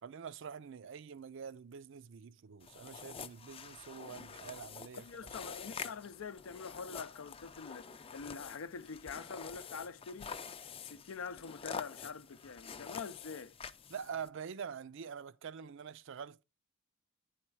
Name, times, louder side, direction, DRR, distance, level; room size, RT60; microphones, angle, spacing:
voice 1, 0.0-5.4 13.9-16.4, right 7 dB, 65° right, 0.4 m, -46 dB
sound 1, 2.6-14.3, left 6 dB, 30° left, 0.4 m, -47 dB
voice 2, 5.0-10.3 10.7-13.5, left 5 dB, 80° left, 0.5 m, -45 dB
9.8 x 4.3 x 4.6 m
head